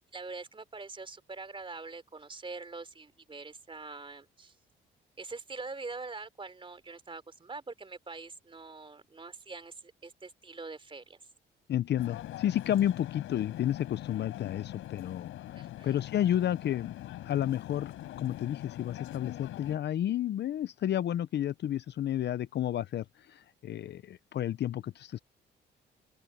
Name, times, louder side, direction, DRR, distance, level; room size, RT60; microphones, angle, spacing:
voice 1, 0.0-4.5 5.2-11.2 15.6-16.0, right 3 dB, 25° right, 3.5 m, -44 dB
voice 2, 11.7-15.3 15.8-17.0 17.3-25.2, left 11 dB, 60° left, 0.6 m, -31 dB
sound 1, 12.0-19.8, left 14 dB, 85° left, 5.4 m, -43 dB
open air
cardioid pair, 90°, 20 cm